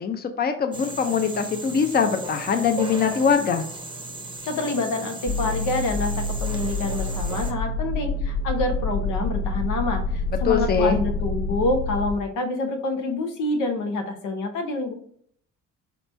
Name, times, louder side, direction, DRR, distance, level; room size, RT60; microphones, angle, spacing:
voice 1, 0.0-3.7 10.4-11.0, left 6 dB, 30° left, 7 dB, 0.6 m, -22 dB
sound 1, 0.7-7.5, right 2 dB, 15° right, 0.7 m, -36 dB
voice 2, 4.5-14.9, left 2 dB, 90° left, 5 dB, 0.8 m, -27 dB
sound 2, 5.3-12.1, left 2 dB, 60° left, 1.0 m, -27 dB
4.0 x 3.0 x 3.3 m, 0.62 s
cardioid pair, 90°, 30 cm